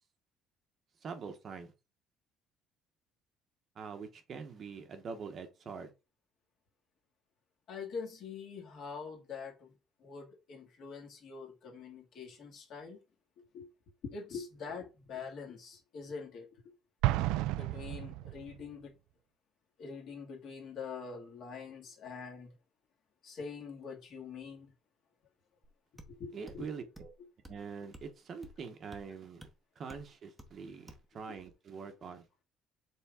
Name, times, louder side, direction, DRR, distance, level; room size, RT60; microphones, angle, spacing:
voice 1, 1.0-1.7 3.7-5.9 26.3-27.1 27.5-29.5 29.8-32.2, right 5 dB, 30° right, 1.0 m, -44 dB
voice 2, 7.7-9.7 10.0-13.0 13.5-13.7 14.0-16.5 17.6-18.9 19.8-22.5 23.2-24.7 26.2-26.7 31.3-31.4, left 5 dB, 45° left, 2.1 m, -44 dB
Explosion, 17.0-18.6, right 16 dB, 85° right, 0.4 m, -32 dB
sound 1, 25.6-25.7 26.0-26.1 26.5-26.6 27.0-27.2 27.4-27.6 27.9-28.1 28.4-28.6 28.9-29.0 29.4-29.5 29.9-30.1 30.4-30.5 30.9-31.1, equal, 5° right, 0.9 m, -51 dB
7.1 x 3.9 x 3.6 m
cardioid pair, 175°, 0 cm